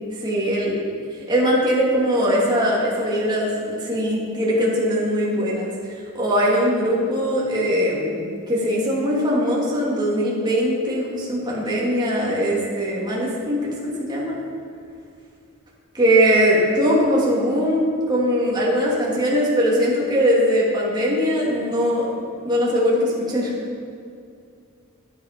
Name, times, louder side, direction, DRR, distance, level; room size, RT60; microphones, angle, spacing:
voice 1, 0.2-0.8 1.3-8.2 8.5-14.4 15.9-22.1 22.4-23.5, equal, 20° right, -6 dB, 2.5 m, -21 dB
10.0 x 9.5 x 5.1 m, 2.4 s
head